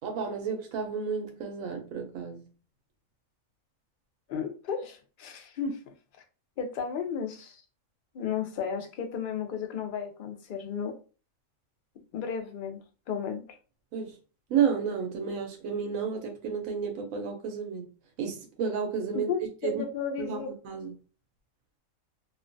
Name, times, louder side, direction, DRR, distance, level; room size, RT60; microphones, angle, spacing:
voice 1, 0.0-2.5 13.9-14.2 14.5-17.9 18.2-19.3 19.6-19.8 20.2-20.9, right 6 dB, 85° right, 1.0 m, -31 dB
voice 2, 4.3-5.8 6.6-7.6 8.1-10.9 12.1-12.8 13.1-13.6 19.3-20.5, left 6 dB, 65° left, 0.5 m, -33 dB
2.5 x 2.2 x 2.5 m
omnidirectional pair, 1.4 m